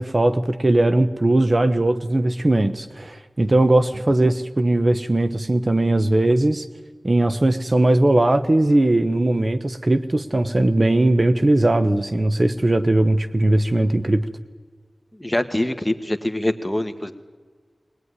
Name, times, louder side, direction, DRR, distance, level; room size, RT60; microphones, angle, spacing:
voice 1, 0.0-6.7 7.0-14.2, right 1 dB, 45° right, 10 dB, 1.0 m, -19 dB
voice 2, 15.2-17.1, left 1 dB, 10° left, 8 dB, 1.5 m, -24 dB
20.5 x 19.5 x 9.7 m, 1.5 s
wide cardioid pair, 60°, 0 cm